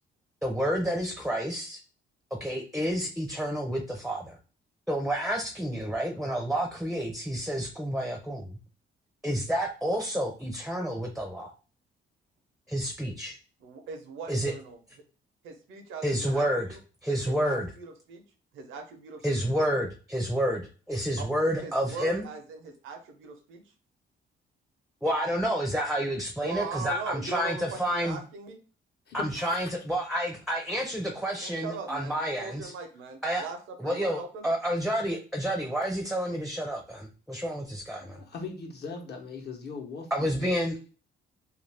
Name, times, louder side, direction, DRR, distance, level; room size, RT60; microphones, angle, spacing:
voice 1, 0.4-1.8 2.3-4.4 4.9-8.6 9.2-11.5 12.7-13.4 14.3-14.5 16.0-16.7 17.0-17.7 19.2-22.3 25.0-28.2 29.1-32.7 33.2-33.4 33.8-38.2 40.1-40.9, equal, ahead, 0.5 m, -29 dB
voice 2, 13.6-14.8 15.4-16.8 17.3-18.2 18.5-19.5 21.2-21.3 21.5-23.6 26.4-28.6 31.4-34.5, right 5 dB, 85° right, 0.7 m, -40 dB
voice 3, 29.1-29.7 38.0-40.4, left 4 dB, 55° left, 0.9 m, -40 dB
2.4 x 2.3 x 3.3 m
cardioid pair, 90°, 20 cm